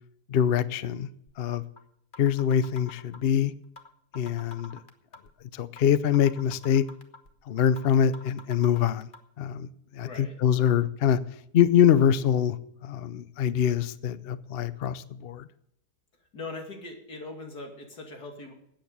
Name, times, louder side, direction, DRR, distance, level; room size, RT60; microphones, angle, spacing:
voice 1, 0.3-1.1 1.4-1.6 2.2-3.5 4.1-4.8 5.5-6.8 7.5-9.1 9.4-11.2 11.5-12.6 12.8-15.5, left 9 dB, 60° left, 0.6 m, -24 dB
sound 1, 1.3-1.4 1.8-1.9 2.1-3.3 3.8-5.3 5.8-5.9 6.1-7.3 7.8-7.9 8.1-9.2, left 3 dB, 35° left, 1.3 m, -46 dB
voice 2, 10.0-10.3 16.3-18.5, left 3 dB, 75° left, 3.1 m, -40 dB
13.0 x 9.1 x 6.8 m
omnidirectional pair, 1.7 m